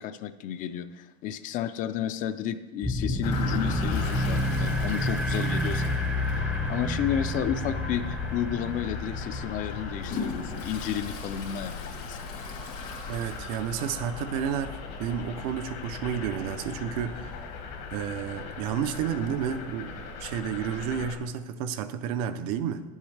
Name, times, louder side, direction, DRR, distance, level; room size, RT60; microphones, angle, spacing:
voice 1, 0.0-12.3, left 9 dB, 45° left, 12 dB, 0.4 m, -32 dB
sound 1, 2.8-10.9, left 1 dB, 5° right, 0.5 m, -30 dB
Toilet flush, 3.2-6.6 6.9-7.0 7.4-7.5 8.4-8.5 9.0-14.0 14.3-14.4 14.5-14.6 15.7-15.8, left 4 dB, 85° left, 2.2 m, -41 dB
sound 2, 3.2-21.2, left 4 dB, 60° left, 1.2 m, -38 dB
voice 2, 13.1-17.4 17.9-22.8, right 8 dB, 75° right, 10 dB, 0.6 m, -31 dB
9.4 x 7.3 x 3.3 m, 1.2 s
supercardioid pair, 140°, 19 cm